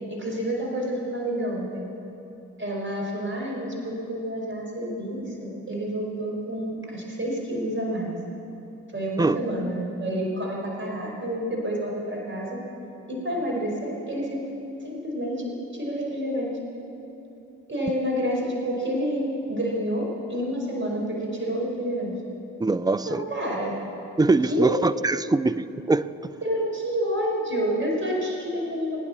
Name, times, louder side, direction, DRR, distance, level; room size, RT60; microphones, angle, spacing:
voice 1, 0.1-1.8 2.6-8.1 8.9-12.6 13.1-15.4 15.7-16.5 17.7-22.1 23.1-23.8 24.4-24.9 26.4-29.0, equal, 30° right, -2 dB, 5.0 m, -29 dB
voice 2, 22.6-23.2 24.2-26.1, right 3 dB, 10° right, 13 dB, 0.5 m, -22 dB
21.0 x 9.4 x 7.3 m, 2.9 s
figure-of-eight pair, 40°, 37 cm